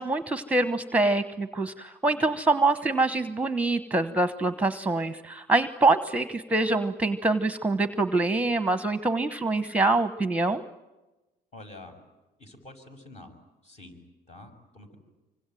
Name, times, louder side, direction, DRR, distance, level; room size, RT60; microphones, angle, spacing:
voice 1, 0.0-10.6, right 2 dB, 10° right, 11 dB, 1.1 m, -25 dB
voice 2, 11.5-11.9 12.4-13.3 13.6-14.0 14.3-15.0, left 2 dB, 40° left, 5 dB, 6.7 m, -47 dB
26.0 x 24.5 x 9.2 m, 1.1 s
cardioid pair, 110°, 17 cm